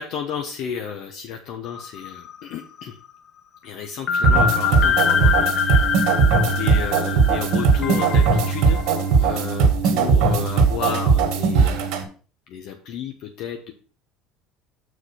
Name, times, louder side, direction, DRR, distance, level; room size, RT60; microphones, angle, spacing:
voice 1, 0.0-3.0 3.6-6.0 6.4-8.8 9.2-12.0 12.5-13.7, left 7 dB, 60° left, 3 dB, 1.1 m, -32 dB
sound 1, 1.7-2.5 2.8-2.9 4.1-9.0, left 7 dB, 40° left, 0.6 m, -24 dB
sound 2, 4.2-12.0, right 5 dB, 70° right, 1.8 m, -19 dB
6.5 x 4.8 x 5.8 m, 0.38 s
cardioid pair, 135°, 0 cm